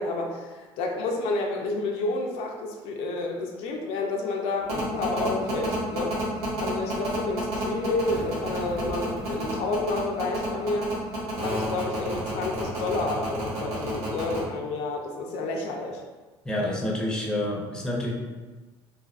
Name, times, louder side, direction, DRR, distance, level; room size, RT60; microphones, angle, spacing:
voice 1, 0.0-6.2 6.6-16.0, left 3 dB, 75° left, 0 dB, 0.4 m, -30 dB
sound 1, 4.7-14.4, right 2 dB, 75° right, 1.1 m, -30 dB
voice 2, 16.4-18.1, left 1 dB, 5° left, -3 dB, 0.5 m, -28 dB
2.6 x 2.4 x 2.3 m, 1.3 s
supercardioid pair, 100°, 11 cm